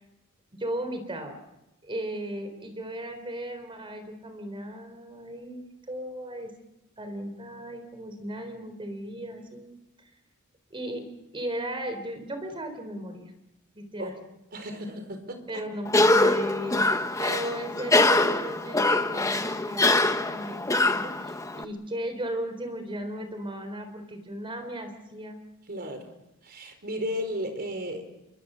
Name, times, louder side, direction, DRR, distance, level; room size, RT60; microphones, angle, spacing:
voice 1, 0.5-1.4 1.8-6.5 7.0-9.7 10.7-11.0 11.3-13.3 13.7-14.1 15.5-16.8 17.2-25.4, right 1 dB, 25° right, 7 dB, 4.0 m, -36 dB
voice 2, 14.5-15.6 25.7-26.1 26.4-28.0, equal, 45° right, 7 dB, 4.6 m, -34 dB
Cough, 15.8-21.6, left 2 dB, 15° left, 1.2 m, -23 dB
28.0 x 23.5 x 6.9 m, 0.92 s
head